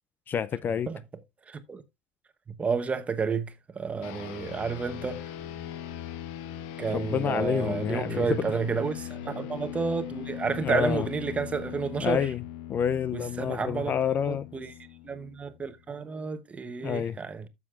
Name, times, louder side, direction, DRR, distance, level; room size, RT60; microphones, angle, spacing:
voice 1, 0.3-0.9 6.9-8.4 10.6-11.1 12.0-12.4 12.7-14.5 16.8-17.2, left 8 dB, 35° left, 0.4 m, -28 dB
voice 2, 1.5-1.8 2.6-5.2 6.8-12.2 13.1-13.9 14.3-14.7 15.0-17.4, right 5 dB, 25° right, 1.0 m, -31 dB
sound 1, 4.0-15.7, left 11 dB, 70° left, 1.1 m, -40 dB
12.0 x 7.2 x 2.4 m
supercardioid pair, 100°, 6 cm